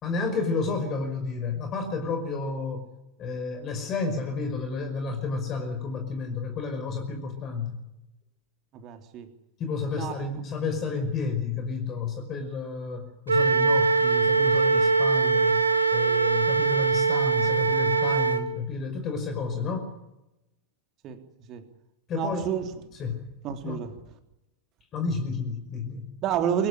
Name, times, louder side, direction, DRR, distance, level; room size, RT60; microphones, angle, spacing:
voice 1, 0.0-2.8 3.2-7.8 9.6-15.6 15.9-19.9 22.1-22.5 23.0-23.3 23.6-23.8 24.9-26.2, left 4 dB, 30° left, 5 dB, 5.4 m, -31 dB
voice 2, 8.7-9.3 9.9-10.3 21.0-21.2 21.5-21.7 22.1-22.7 23.4-24.0 26.2-26.7, right 8 dB, 35° right, 7 dB, 3.4 m, -30 dB
Wind instrument woodwind instrument, 13.3-18.4, right 4 dB, 75° right, 2.3 m, -22 dB
24.5 x 17.0 x 10.0 m, 0.91 s
figure-of-eight pair, 90°, 0 cm